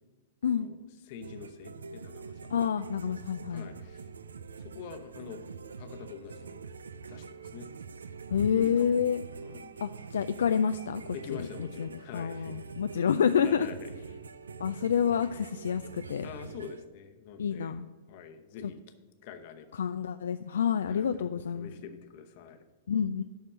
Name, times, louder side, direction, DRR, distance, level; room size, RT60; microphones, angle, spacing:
voice 1, 0.5-0.8 1.0-2.5 3.5-4.1 4.6-5.4 5.7-6.6 6.9-7.7 8.5-9.2 9.4-9.8 11.1-12.7 13.4-13.9 16.2-17.8 18.1-18.8 19.2-19.9 20.9-22.6, left 7 dB, 50° left, 7 dB, 0.9 m, -46 dB
sound 1, 1.2-16.8, right 5 dB, 75° right, 0.4 m, -45 dB
voice 2, 2.5-3.6 8.3-9.2 9.8-11.0 11.3-11.5 11.8-13.7 14.6-16.3 17.4-17.9 19.8-21.7 22.9-23.2, left 7 dB, 70° left, 10 dB, 0.3 m, -28 dB
11.5 x 4.3 x 7.3 m, 1.3 s
figure-of-eight pair, 100°, 0 cm